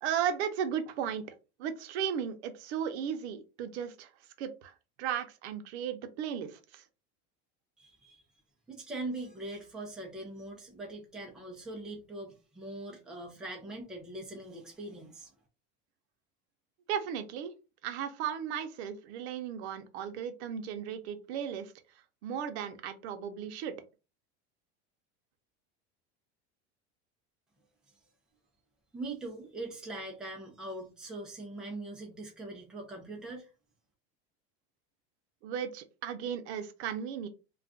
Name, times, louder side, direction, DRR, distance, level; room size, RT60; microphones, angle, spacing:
voice 1, 0.0-1.2 1.6-4.1 4.4-4.7 5.0-6.8 16.9-17.5 17.8-21.7 22.2-23.7 35.4-37.3, right 8 dB, 75° right, 0.7 m, -35 dB
voice 2, 7.8-8.2 8.7-15.3 28.9-33.5, right 2 dB, ahead, 0.4 m, -42 dB
2.4 x 2.2 x 3.5 m
supercardioid pair, 165°, 33 cm